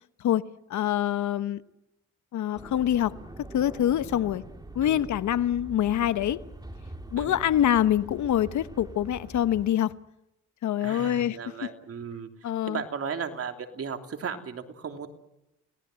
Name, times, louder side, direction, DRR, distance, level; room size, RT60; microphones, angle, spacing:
voice 1, 0.7-1.6 2.3-3.1 3.5-4.4 4.7-6.4 7.1-9.9 10.6-11.4 12.4-12.8, left 11 dB, 70° left, 1.2 m, -25 dB
sound 1, 2.6-9.7, right 1 dB, 15° right, 3.6 m, -44 dB
voice 2, 10.8-15.1, right 6 dB, 50° right, 3.1 m, -36 dB
29.0 x 19.0 x 7.8 m
cardioid pair, 90°, 30 cm